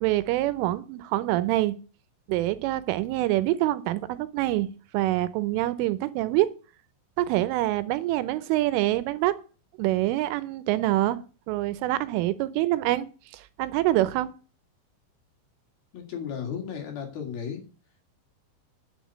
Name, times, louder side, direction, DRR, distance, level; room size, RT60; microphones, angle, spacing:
voice 1, 0.0-1.8 2.3-4.7 4.9-6.5 7.2-9.3 9.8-11.2 11.5-13.1 13.3-14.3, right 16 dB, 85° right, 15 dB, 3.3 m, -25 dB
voice 2, 15.9-17.6, left 7 dB, 55° left, 3 dB, 4.0 m, -34 dB
10.0 x 6.9 x 8.3 m, 0.37 s
omnidirectional pair, 5.6 m